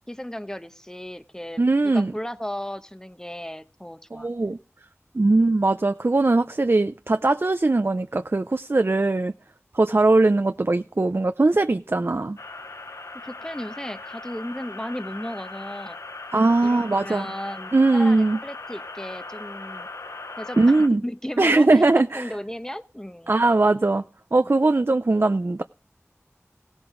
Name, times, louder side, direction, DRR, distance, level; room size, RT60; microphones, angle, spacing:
voice 1, 0.1-4.3 13.1-16.0 16.6-19.9 20.4-23.3, equal, 10° left, 1.0 m, -35 dB
voice 2, 1.6-2.1 4.1-4.6 5.1-9.3 9.7-12.4 16.3-17.3 17.7-18.4 20.6-21.0 21.4-22.3 23.3-24.0 24.3-25.6, right 2 dB, 50° right, 0.5 m, -20 dB
sound 1, 12.4-20.9, left 3 dB, 75° left, 0.7 m, -39 dB
17.0 x 7.9 x 3.8 m
wide cardioid pair, 45°, 5 cm